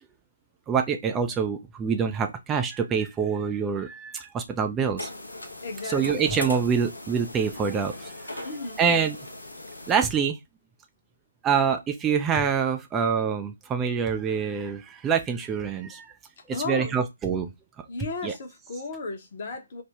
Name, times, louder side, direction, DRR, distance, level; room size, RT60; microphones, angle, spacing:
voice 1, 0.7-5.1 5.9-8.5 8.8-9.2 9.9-10.4 11.4-16.1 16.7-17.5 18.2-18.3, right 6 dB, 10° right, 0.3 m, -26 dB
sound 1, 5.0-10.0, left 1 dB, 75° left, 0.8 m, -39 dB
voice 2, 5.6-6.4 8.4-8.8 16.4-17.0 17.9-19.8, left 3 dB, 40° left, 0.8 m, -35 dB
3.3 x 2.1 x 2.9 m
figure-of-eight pair, 140°, 0 cm